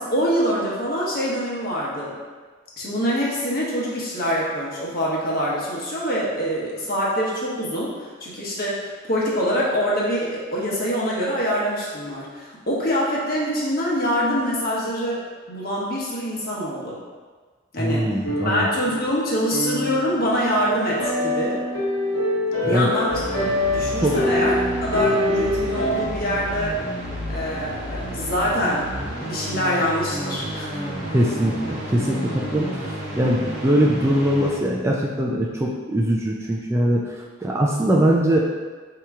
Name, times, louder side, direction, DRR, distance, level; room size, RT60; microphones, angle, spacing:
voice 1, 0.0-2.2 2.8-15.2 15.5-17.0 17.7-18.2 18.4-21.6 22.6-23.2 23.7-26.8 27.3-28.9 29.3-30.8, equal, 45° left, -5 dB, 1.1 m, -25 dB
voice 2, 17.8-18.7 22.7-22.9 24.0-24.2 31.1-37.0 37.4-38.4, right 1 dB, 15° right, -3 dB, 0.3 m, -21 dB
sound 1, 18.2-26.1, left 1 dB, 90° left, 1.0 m, -25 dB
sound 2, 23.1-34.6, equal, 55° right, 1.2 m, -31 dB
4.6 x 2.9 x 3.6 m, 1.4 s
head